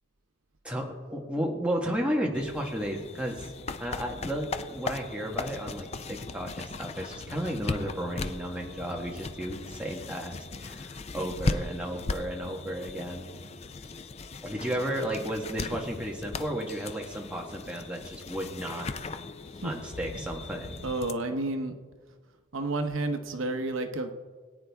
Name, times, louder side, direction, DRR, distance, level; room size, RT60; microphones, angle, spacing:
voice 1, 0.6-3.5 3.8-13.5 14.4-18.9 19.6-20.9, equal, 5° right, -1 dB, 1.4 m, -33 dB
sound 1, 2.3-21.1, left 3 dB, 30° left, 0.4 m, -38 dB
voice 2, 20.8-21.7 22.5-24.1, right 2 dB, 75° right, 7 dB, 0.9 m, -30 dB
22.0 x 9.0 x 3.5 m, 1.5 s
head